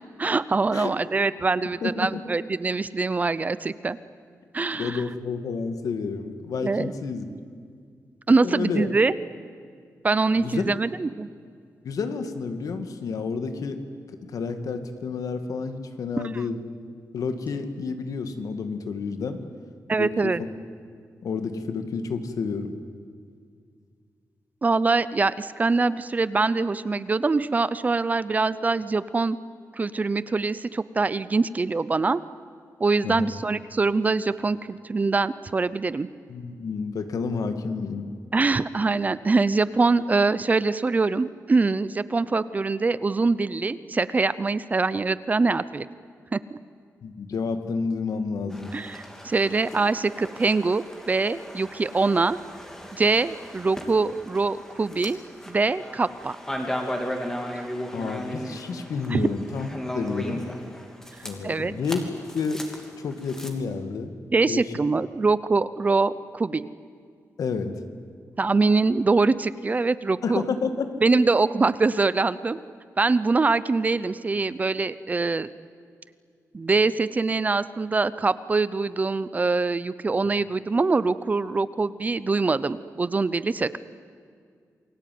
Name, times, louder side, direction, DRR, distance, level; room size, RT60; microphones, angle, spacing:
voice 1, 0.2-4.0 4.5-5.0 6.6-6.9 8.3-9.1 10.0-11.3 19.9-20.4 24.6-29.4 29.7-32.2 32.8-36.1 38.3-45.9 46.3-46.6 48.7-52.4 52.9-55.2 55.5-56.4 57.5-57.7 59.1-59.3 61.4-61.7 64.3-66.7 68.4-70.4 71.0-72.6 73.0-75.5 76.5-83.8, right 3 dB, 25° right, 16 dB, 0.7 m, -23 dB
voice 2, 1.8-2.1 4.7-7.3 8.3-8.9 10.4-10.8 11.8-13.8 14.1-16.6 17.1-19.4 20.0-20.3 21.2-22.8 33.0-33.3 36.3-38.1 47.0-48.7 57.9-59.7 59.9-60.4 61.2-62.0 62.3-62.6 63.0-64.1 64.5-64.7 67.4-67.8 70.2-71.0, left 5 dB, 75° left, 8 dB, 2.3 m, -30 dB
sound 1, 48.5-63.5, equal, 10° left, 2.9 m, -36 dB
28.5 x 22.0 x 9.5 m, 2.1 s
wide cardioid pair, 165°, 6 cm